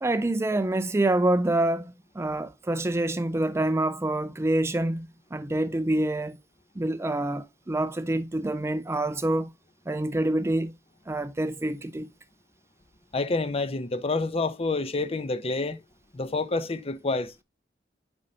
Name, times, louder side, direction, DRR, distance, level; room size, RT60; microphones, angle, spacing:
voice 1, 0.0-6.4 6.8-9.5 9.9-10.7 11.1-12.1, right 1 dB, 15° right, 0.4 m, -26 dB
voice 2, 13.1-15.8 16.1-17.4, left 3 dB, 30° left, 0.6 m, -28 dB
8.5 x 5.3 x 2.7 m
head